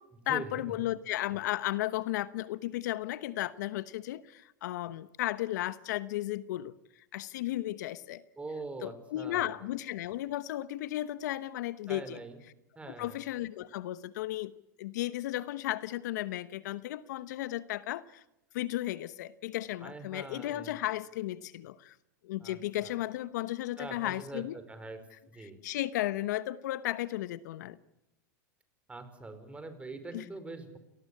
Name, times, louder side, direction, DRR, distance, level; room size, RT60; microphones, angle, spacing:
voice 1, 0.3-6.7 7.1-8.2 8.8-12.2 12.9-14.5 14.8-18.2 18.5-22.0 22.2-24.5 25.4-27.8 30.1-30.2, left 15 dB, 70° left, 16 dB, 1.0 m, -34 dB
voice 2, 8.4-9.7 11.9-12.4 12.7-13.2 19.8-20.7 22.4-22.9 23.8-25.0 25.3-25.6 28.9-30.8, right 3 dB, 10° right, 10 dB, 5.1 m, -43 dB
27.5 x 19.0 x 8.6 m, 0.91 s
hypercardioid pair, 105°, 10 cm